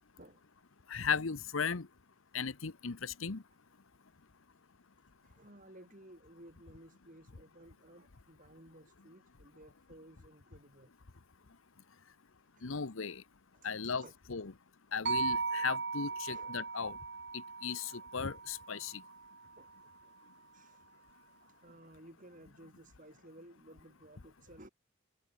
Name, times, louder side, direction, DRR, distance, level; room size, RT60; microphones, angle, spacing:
voice 1, 0.9-1.9 2.3-3.4 12.6-13.2 13.6-14.5 14.9-17.0 17.3-19.0, left 6 dB, 70° left, 1.0 m, -36 dB
voice 2, 5.2-10.9 12.5-12.7 13.5-14.1 15.5-15.7 16.1-16.6 18.7-18.8 19.6-20.1 20.5-20.9 21.4-24.7, right 1 dB, 40° right, 4.9 m, -57 dB
sound 1, 15.1-19.3, right 4 dB, 55° right, 2.4 m, -37 dB
head